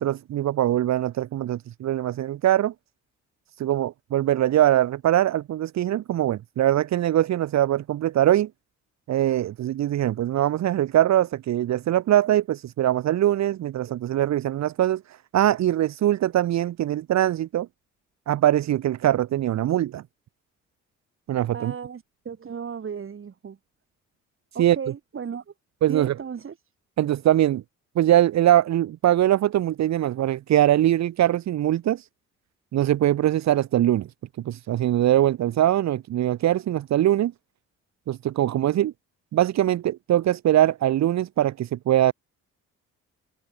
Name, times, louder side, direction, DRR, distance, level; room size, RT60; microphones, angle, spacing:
voice 1, 0.0-2.7 3.6-8.5 9.1-15.0 15.3-17.7 18.3-20.0 21.3-21.7 24.6-24.8 25.8-26.2 27.0-27.6 28.0-32.0 32.7-34.1 34.4-37.3 38.1-38.9 39.3-42.1, right 12 dB, 65° right, 1.0 m, -22 dB
voice 2, 21.5-23.6 24.5-25.4 25.9-26.5, right 7 dB, 45° right, 3.1 m, -35 dB
cardioid pair, 90°, 30 cm